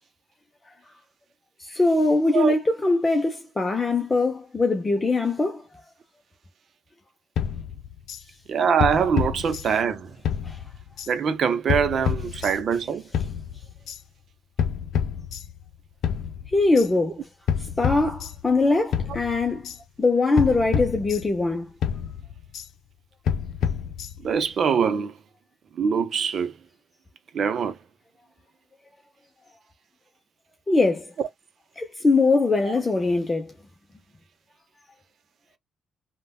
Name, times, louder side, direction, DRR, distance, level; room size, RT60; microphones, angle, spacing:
voice 1, 1.6-5.6 10.4-10.6 12.3-12.4 16.5-17.3 17.8-19.7 20.0-21.7 30.7-31.1 31.8-33.5, left 3 dB, 25° left, 0.6 m, -22 dB
sound 1, 7.4-8.2 8.8-10.0 10.2-11.1 11.7-12.8 13.1-14.0 14.6-15.7 16.0-16.9 17.5-18.6 18.9-19.8 20.4-21.5 21.8-22.7 23.3-24.4, left 8 dB, 75° left, 0.5 m, -29 dB
voice 2, 8.5-10.2 11.1-13.0 24.2-25.1 25.8-26.5 27.3-27.8, right 7 dB, 55° right, 0.6 m, -23 dB
3.4 x 2.2 x 2.2 m
cardioid pair, 90°, 0 cm